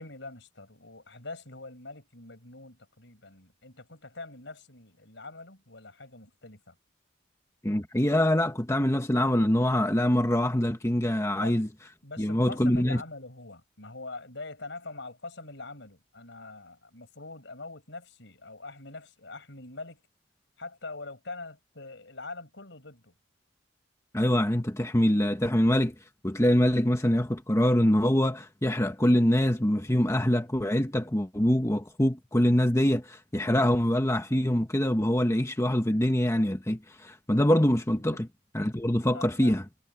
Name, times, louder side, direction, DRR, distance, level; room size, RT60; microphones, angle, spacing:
voice 1, 0.0-6.8 11.3-11.7 12.0-20.0 20.6-23.1 39.1-39.6, left 3 dB, 70° left, 7.1 m, -43 dB
voice 2, 7.6-11.7 12.2-13.0 24.1-25.9 26.2-38.3 38.5-39.6, left 1 dB, 15° left, 1.4 m, -24 dB
head